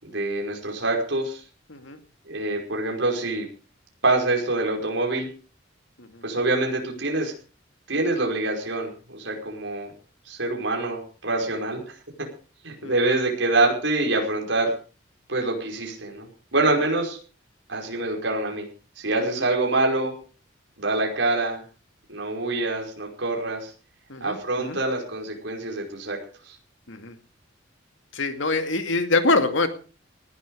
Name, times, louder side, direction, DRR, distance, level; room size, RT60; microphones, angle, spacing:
voice 1, 0.0-1.4 2.3-3.5 4.0-5.3 6.2-7.3 7.9-9.9 10.3-11.9 12.6-14.7 15.3-17.2 17.7-18.7 19.0-20.1 20.8-21.6 22.1-23.7 24.2-26.2 26.5-26.6, right 2 dB, 70° right, 0 dB, 5.3 m, -25 dB
voice 2, 1.7-2.0 6.0-6.2 12.8-13.1 19.2-19.3 24.1-24.8 26.9-27.2 28.1-29.7, left 3 dB, 75° left, 7 dB, 2.4 m, -25 dB
19.5 x 12.5 x 4.9 m, 0.38 s
head